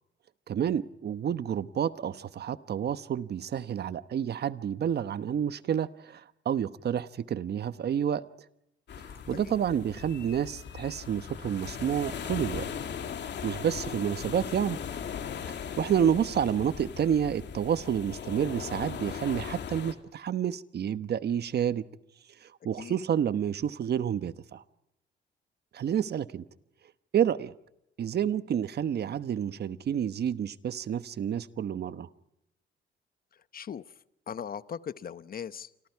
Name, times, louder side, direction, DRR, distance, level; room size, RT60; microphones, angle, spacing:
voice 1, 0.5-8.2 9.3-12.7 13.4-14.8 15.5-21.8 22.4-24.6 25.7-26.4 27.1-27.5 28.0-32.1, right 9 dB, 55° right, 13 dB, 1.1 m, -29 dB
sound 1, 8.9-19.9, left 7 dB, 60° left, 2.6 m, -38 dB
voice 2, 33.5-33.8 34.3-35.9, left 8 dB, 45° left, 14 dB, 1.1 m, -39 dB
28.5 x 26.0 x 4.7 m, 0.82 s
cardioid pair, 90°, 20 cm